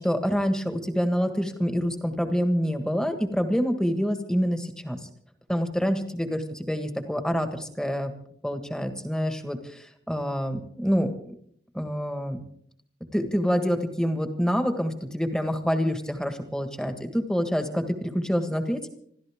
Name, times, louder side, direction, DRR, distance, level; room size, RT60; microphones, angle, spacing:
voice 1, 0.0-5.0 5.5-8.1 8.4-11.1 11.7-12.4 13.1-18.9, equal, 5° left, 7 dB, 1.6 m, -27 dB
27.0 x 13.0 x 3.6 m, 0.64 s
head